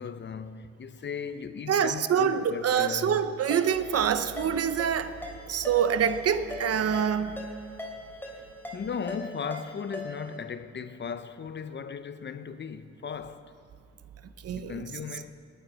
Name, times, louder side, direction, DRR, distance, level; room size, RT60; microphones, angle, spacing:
voice 1, 0.0-3.2 8.3-8.4 8.7-13.5 14.5-15.3, left 6 dB, 35° left, 0.7 m, -37 dB
voice 2, 1.7-5.1 5.5-7.5 14.4-14.8, right 8 dB, 55° right, 0.8 m, -26 dB
Ringtone, 3.5-10.4, left 1 dB, 5° left, 3.4 m, -41 dB
19.0 x 10.5 x 6.3 m
cardioid pair, 90°, 30 cm